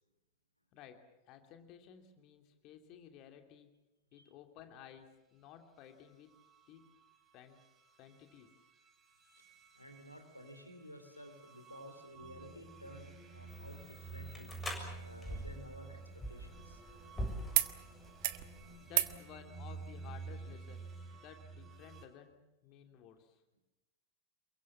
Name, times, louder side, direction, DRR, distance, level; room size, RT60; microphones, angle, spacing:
voice 1, 0.7-3.7 4.1-6.3 6.7-6.8 7.3-7.6 8.0-8.6 18.8-23.4, left 9 dB, 40° left, 6 dB, 2.8 m, -55 dB
sound 1, 5.9-22.1, right 4 dB, 20° right, 4.1 m, -51 dB
voice 2, 9.7-14.5 15.0-16.0 16.3-16.8 17.7-17.9, equal, 90° left, 7 dB, 3.5 m, -53 dB
sound 2, 13.5-18.8, equal, 10° left, 7.0 m, -45 dB
sound 3, 15.3-17.1 17.5-17.7 18.0-18.4 18.9-19.2 20.5-20.6, right 17 dB, 50° right, 1.3 m, -36 dB
27.5 x 23.0 x 7.6 m, 0.94 s
figure-of-eight pair, 90°, 0 cm